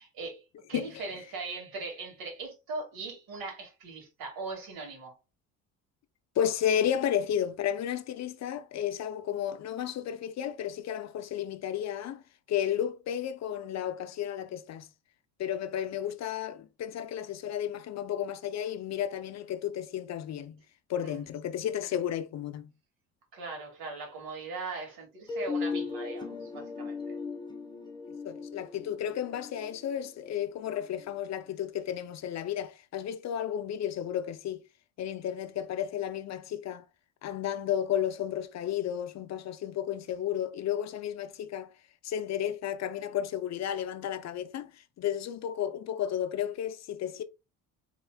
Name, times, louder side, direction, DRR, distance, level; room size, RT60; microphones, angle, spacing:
voice 1, 0.0-5.2 21.0-21.2 23.3-27.2, right 3 dB, 75° right, 2.2 m, -40 dB
voice 2, 6.4-12.2 12.5-14.9 15.4-20.6 20.9-22.7 28.2-34.6 35.0-36.8 37.2-41.7 42.0-47.2, left 10 dB, 45° left, 0.5 m, -33 dB
sound 1, 25.3-31.1, left 4 dB, 10° left, 1.1 m, -37 dB
4.6 x 3.6 x 2.2 m
cardioid pair, 100°, 37 cm